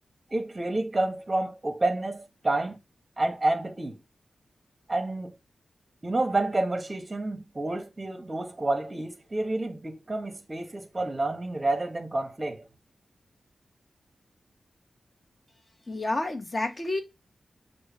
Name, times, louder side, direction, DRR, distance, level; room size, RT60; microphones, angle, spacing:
voice 1, 0.3-2.8 3.2-4.0 4.9-5.4 6.0-12.7, right 2 dB, 25° right, 0.8 m, -29 dB
voice 2, 15.9-17.0, left 2 dB, 35° left, 1.0 m, -29 dB
6.0 x 2.1 x 3.3 m
wide cardioid pair, 100°, 0 cm